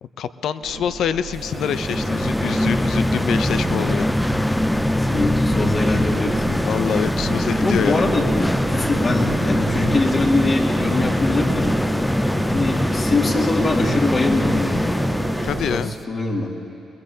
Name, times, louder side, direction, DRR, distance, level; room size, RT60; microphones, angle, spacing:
voice 1, 0.0-4.2 6.6-8.1 15.4-15.9, left 8 dB, 75° left, 13 dB, 0.5 m, -26 dB
sound 1, 0.6-15.8, right 4 dB, 80° right, 2.0 m, -33 dB
sound 2, 1.4-16.0, left 1 dB, 5° left, 0.3 m, -22 dB
voice 2, 5.0-6.7 7.6-11.7 12.5-14.8 15.6-16.5, left 3 dB, 45° left, -1 dB, 2.3 m, -23 dB
22.0 x 21.0 x 2.8 m, 2.7 s
cardioid pair, 70°, 0 cm